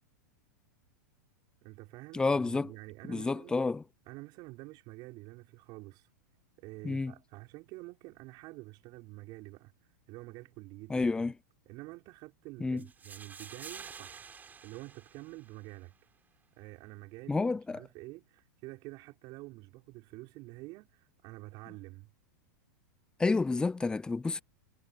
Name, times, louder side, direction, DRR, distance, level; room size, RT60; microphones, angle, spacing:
voice 1, 1.6-3.6 4.1-6.1 6.6-9.7 10.1-11.3 11.7-14.3 14.6-15.9 16.6-22.1, right 22 dB, 45° right, 5.5 m, -48 dB
voice 2, 2.1-2.7 3.1-3.8 6.8-7.1 10.9-11.3 12.6-12.8 17.3-17.8 23.2-24.4, left 3 dB, 10° left, 0.5 m, -29 dB
sound 1, 12.8-15.8, right 6 dB, 15° right, 6.6 m, -49 dB
hypercardioid pair, 125°, 10 cm